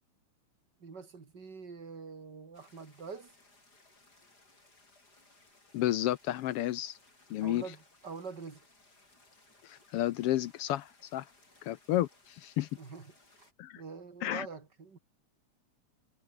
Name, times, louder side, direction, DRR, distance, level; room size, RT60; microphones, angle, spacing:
voice 1, 0.8-3.3 7.4-8.7 12.8-13.5 13.8-15.0, right 5 dB, 35° right, 3.6 m, -45 dB
sound 1, 2.5-13.5, left 2 dB, 30° left, 6.3 m, -63 dB
voice 2, 5.7-7.0 7.3-7.6 9.6-11.2 11.6-12.7 13.6-13.8 14.2-14.5, left 14 dB, 75° left, 1.4 m, -31 dB
omnidirectional pair, 3.3 m